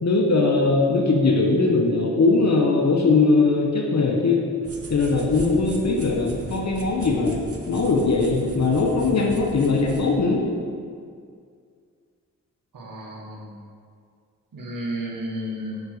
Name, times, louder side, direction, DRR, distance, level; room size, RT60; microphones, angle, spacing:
voice 1, 0.0-4.4 4.9-7.4 7.7-10.5, left 3 dB, 50° left, 0 dB, 1.0 m, -20 dB
sound 1, 4.6-10.1, right 2 dB, 40° right, 1.0 m, -37 dB
voice 2, 12.7-13.5 14.5-15.8, equal, 70° right, -1 dB, 1.5 m, -32 dB
5.8 x 4.5 x 6.4 m, 2.2 s
supercardioid pair, 40°, 34 cm